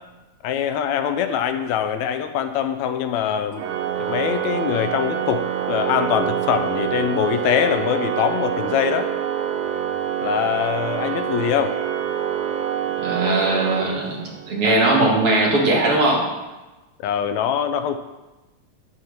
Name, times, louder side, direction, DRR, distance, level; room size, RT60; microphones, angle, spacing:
voice 1, 0.4-3.6 4.0-9.1 10.2-11.8 17.0-18.0, left 9 dB, 80° left, 9 dB, 1.7 m, -23 dB
Organ, 3.6-14.5, right 9 dB, 75° right, 1.5 m, -26 dB
voice 2, 13.0-16.3, right 2 dB, 50° right, -2 dB, 2.5 m, -19 dB
11.5 x 4.3 x 6.6 m, 1.1 s
omnidirectional pair, 3.5 m